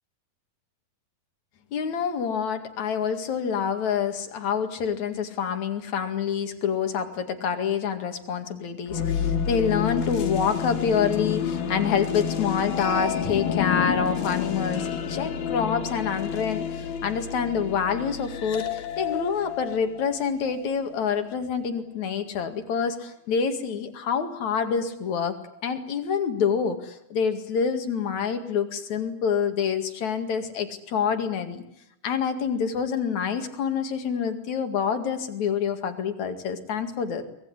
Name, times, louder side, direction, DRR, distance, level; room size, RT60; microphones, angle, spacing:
voice 1, 1.7-25.4 25.6-31.6 32.0-37.2, left 6 dB, 55° left, 8 dB, 3.2 m, -27 dB
sound 1, 8.9-20.7, left 7 dB, 75° left, 3.9 m, -29 dB
24.5 x 20.0 x 9.7 m, 0.81 s
omnidirectional pair, 4.2 m